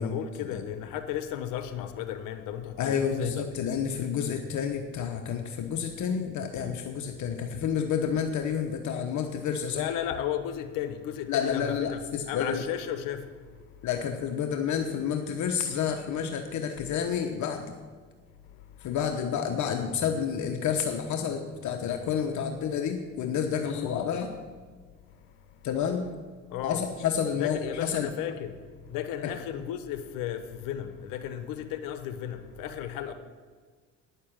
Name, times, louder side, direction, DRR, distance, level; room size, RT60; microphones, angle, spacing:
voice 1, 0.0-3.5 9.7-12.0 12.3-13.2 23.7-23.8 26.5-26.8 27.4-28.5 28.9-33.1, left 10 dB, 85° left, 10 dB, 1.0 m, -34 dB
voice 2, 2.8-9.9 11.3-12.6 13.8-17.8 18.8-24.3 25.6-26.1 26.6-28.1 29.2-29.3, left 7 dB, 65° left, 5 dB, 1.0 m, -29 dB
9.7 x 7.1 x 8.7 m, 1.5 s
cardioid pair, 95°, 32 cm